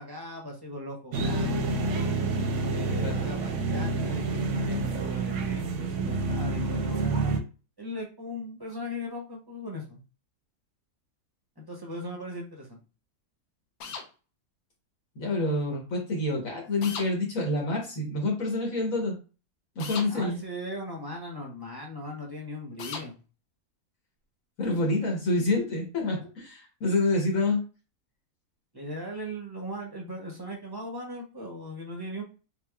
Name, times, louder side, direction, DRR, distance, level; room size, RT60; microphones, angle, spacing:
voice 1, 0.0-1.9 2.7-7.4 7.8-10.0 11.6-12.8 20.1-23.2 28.7-32.2, equal, 25° right, 0 dB, 0.5 m, -38 dB
sound 1, 1.1-7.4, right 3 dB, 60° right, 0.8 m, -28 dB
sound 2, 13.8-14.1 16.8-17.1 19.8-20.1 22.8-23.1, left 5 dB, 85° left, 1.2 m, -37 dB
voice 2, 15.2-19.2 19.8-20.4 24.6-27.6, left 2 dB, 60° left, 0 dB, 1.4 m, -27 dB
3.6 x 3.4 x 2.3 m, 0.33 s
omnidirectional pair, 1.6 m